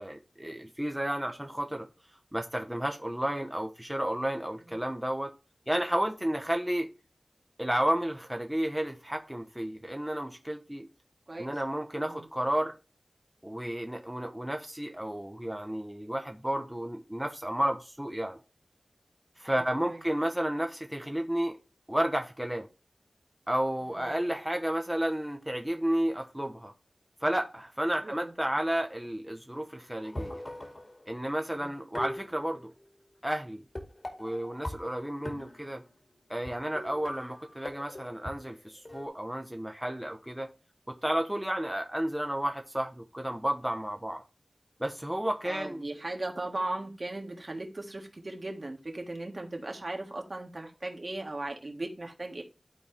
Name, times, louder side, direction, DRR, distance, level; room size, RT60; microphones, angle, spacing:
voice 1, 0.0-1.9 2.3-5.3 5.7-6.9 7.6-10.9 11.4-12.8 13.4-18.4 19.4-21.6 21.9-22.7 23.5-26.7 27.2-30.4 31.1-32.7 33.2-33.6 34.2-35.8 36.3-40.5 40.9-44.2 44.8-45.9, right 1 dB, 10° right, 0.9 m, -32 dB
voice 2, 19.4-20.0 24.1-24.2 28.0-28.3 31.5-31.7 45.5-52.4, right 2 dB, 50° right, 1.8 m, -38 dB
sound 1, 30.0-31.4 31.9-32.9 33.8-35.9 36.4-36.5 36.8-39.1, left 1 dB, 45° left, 2.3 m, -41 dB
12.5 x 4.2 x 3.4 m
wide cardioid pair, 55°, 0 cm